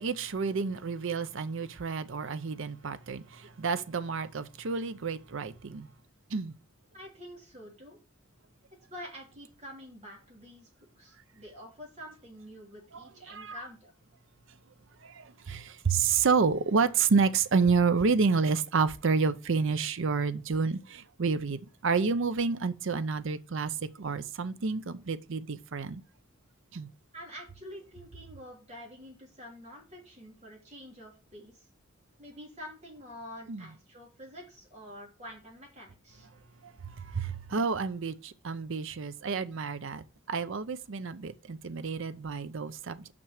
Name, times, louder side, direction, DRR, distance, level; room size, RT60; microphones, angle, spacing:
voice 1, 0.0-5.9 6.3-6.5 12.9-13.6 15.0-26.0 26.7-26.9 33.5-33.7 36.6-36.7 37.0-43.1, right 5 dB, 65° right, 0.6 m, -29 dB
voice 2, 6.9-8.0 8.9-10.7 11.0-13.9 27.1-31.7 32.2-36.3, equal, 35° right, 3.6 m, -47 dB
6.1 x 5.8 x 6.5 m
head